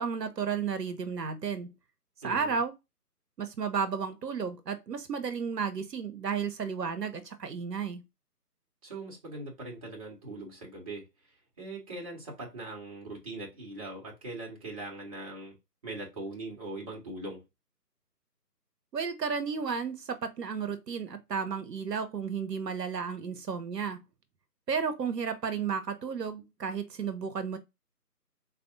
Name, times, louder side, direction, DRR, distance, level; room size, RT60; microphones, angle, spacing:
voice 1, 0.0-1.7 2.2-2.7 3.4-8.0 18.9-24.0 24.7-27.6, right 6 dB, 75° right, 0.9 m, -33 dB
voice 2, 2.2-2.6 8.8-11.1 11.6-15.6 15.8-17.4, right 2 dB, 20° right, 1.3 m, -41 dB
4.0 x 3.3 x 2.5 m
figure-of-eight pair, 160°, 49 cm